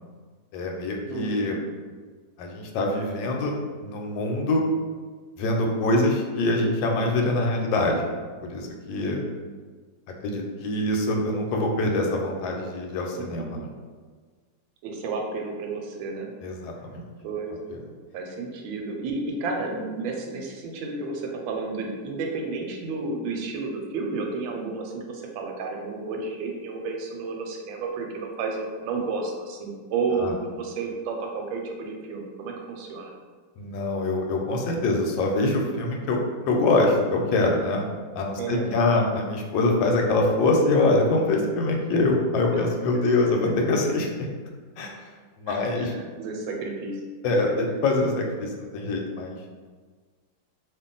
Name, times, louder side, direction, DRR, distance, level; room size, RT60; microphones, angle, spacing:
voice 1, 0.5-1.6 2.4-4.6 5.4-8.1 8.4-9.2 10.2-13.7 16.4-17.0 17.7-17.8 30.2-30.3 33.6-36.2 36.5-37.8 38.1-44.3 44.8-45.1 45.4-45.9 47.2-49.6, left 2 dB, 80° left, 1 dB, 1.3 m, -24 dB
voice 2, 1.1-1.6 13.2-13.6 14.8-16.3 17.2-17.5 18.1-33.1 38.4-38.7 42.5-42.6 45.5-47.0, right 4 dB, 85° right, 1 dB, 1.3 m, -31 dB
2.8 x 2.5 x 3.7 m, 1.5 s
omnidirectional pair, 2.1 m